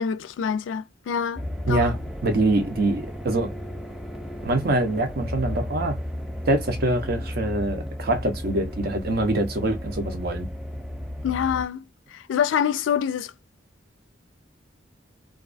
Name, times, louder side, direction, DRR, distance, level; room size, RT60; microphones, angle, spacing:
voice 1, 0.0-1.9 11.2-11.8 12.1-13.3, left 8 dB, 85° left, 0.3 m, -26 dB
sound 1, 1.4-11.7, equal, ahead, 0.3 m, -33 dB
voice 2, 1.7-3.5 4.4-6.0 6.5-10.5, right 2 dB, 55° right, 0.6 m, -24 dB
2.3 x 2.2 x 2.4 m
head